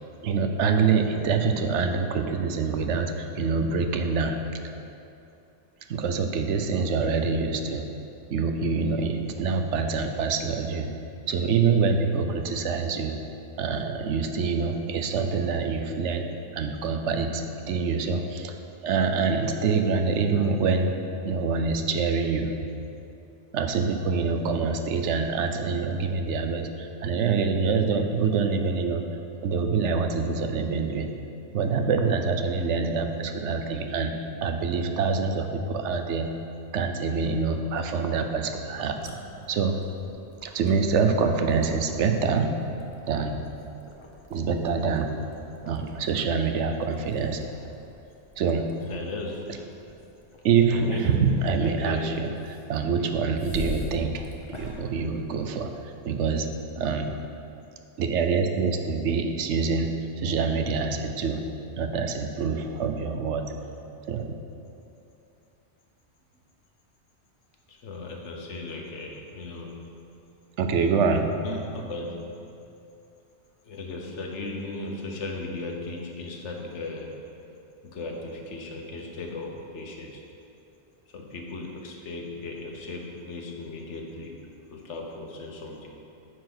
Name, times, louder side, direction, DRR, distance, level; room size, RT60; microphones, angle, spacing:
voice 1, 0.2-4.4 5.9-7.9 8.3-10.9 11.3-13.2 13.6-16.3 16.5-18.5 18.8-20.9 21.2-22.5 23.5-29.0 29.4-31.1 31.5-34.1 34.4-36.3 36.7-39.0 39.5-39.8 40.4-42.6 43.1-43.4 44.3-45.1 45.7-47.4 48.4-48.7 50.4-52.3 52.7-54.3 54.6-55.7 56.1-56.5 56.8-57.2 58.0-61.4 61.8-63.5 64.1-64.3 70.6-71.3, right 5 dB, 85° right, 6 dB, 1.0 m, -25 dB
voice 2, 38.4-39.2 48.8-49.6 50.7-52.2 67.7-70.1 71.4-72.6 73.6-77.3 77.8-80.2 81.1-85.9, left 2 dB, 80° left, 1 dB, 1.3 m, -37 dB
sound 1, 38.7-55.9, left 1 dB, 30° left, 0.8 m, -45 dB
9.3 x 4.6 x 6.0 m, 2.7 s
omnidirectional pair, 1.2 m